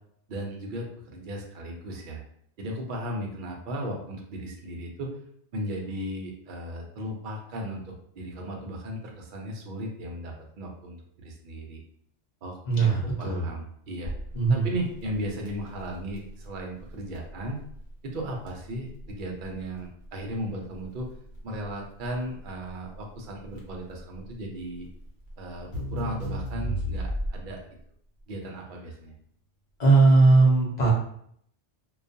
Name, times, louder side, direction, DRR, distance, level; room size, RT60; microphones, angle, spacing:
voice 1, 0.3-2.2 2.6-5.1 5.5-11.8 12.4-14.1 14.5-17.6 18.0-21.1 21.4-24.9 25.4-27.7 28.3-29.1, right 1 dB, 55° right, 1 dB, 0.6 m, -36 dB
voice 2, 12.7-13.5 14.3-14.7 29.8-30.9, right 3 dB, 40° left, -3 dB, 0.8 m, -19 dB
Crackle, 14.0-27.6, equal, 85° left, 1.1 m, -36 dB
2.3 x 2.3 x 2.6 m, 0.66 s
omnidirectional pair, 1.2 m